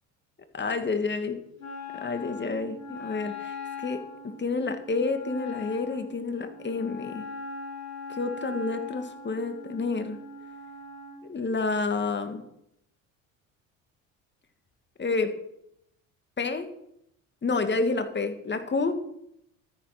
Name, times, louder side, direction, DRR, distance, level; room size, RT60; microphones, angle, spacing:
voice 1, 0.5-1.4 1.9-4.0 4.2-7.3 8.2-10.2 11.3-12.4 15.0-15.3 16.4-16.7 17.4-18.9, left 3 dB, 25° left, 8 dB, 2.4 m, -29 dB
Wind instrument woodwind instrument, 1.6-11.2, left 4 dB, 90° left, 3.3 m, -40 dB
13.0 x 10.5 x 6.1 m, 0.76 s
hypercardioid pair, 65°, 40 cm